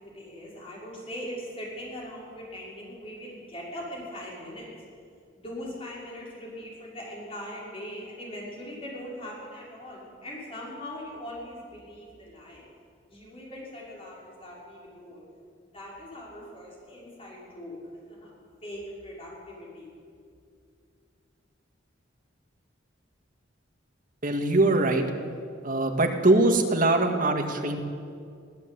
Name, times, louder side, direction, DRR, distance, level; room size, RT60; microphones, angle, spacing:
voice 1, 0.0-4.7 5.4-12.6 13.1-15.2 15.6-17.8 18.1-18.4 18.6-19.9, equal, 30° left, -4 dB, 6.0 m, -41 dB
voice 2, 24.2-25.0 25.6-27.8, right 2 dB, 45° right, 3 dB, 2.1 m, -22 dB
22.0 x 15.0 x 8.6 m, 2.3 s
head